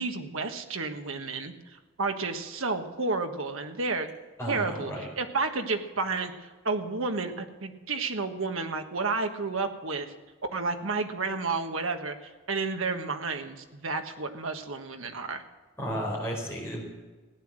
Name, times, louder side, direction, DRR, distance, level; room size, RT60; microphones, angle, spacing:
voice 1, 0.0-4.1 4.5-10.1 10.5-12.1 12.5-15.4, right 3 dB, 75° right, 6 dB, 1.5 m, -31 dB
voice 2, 4.4-5.1 15.8-16.8, equal, 10° left, -3 dB, 4.7 m, -33 dB
16.0 x 9.9 x 7.6 m, 1.3 s
head